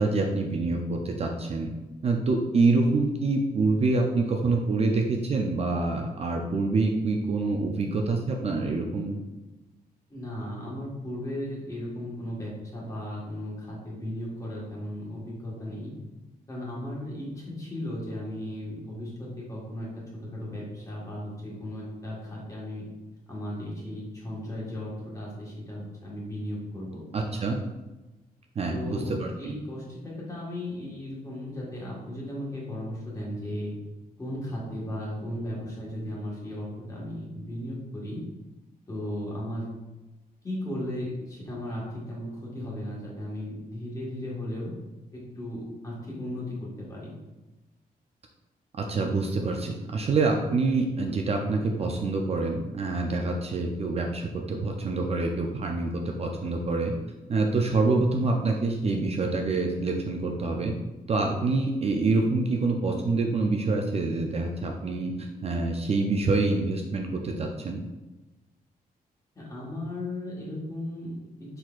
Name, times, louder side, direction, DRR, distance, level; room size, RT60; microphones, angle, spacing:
voice 1, 0.0-1.7 2.0-9.2 27.1-27.6 28.6-29.5 48.8-56.9 57.3-60.7 61.1-67.8, right 3 dB, 40° right, 2 dB, 0.4 m, -26 dB
voice 2, 10.1-16.0 16.5-22.9 23.3-27.0 28.7-33.8 34.2-38.2 38.9-39.8 40.4-44.7 45.1-47.2 61.2-61.4 69.3-71.6, left 1 dB, 20° left, -5 dB, 1.4 m, -36 dB
4.4 x 3.9 x 2.4 m, 1.1 s
wide cardioid pair, 135°, 16 cm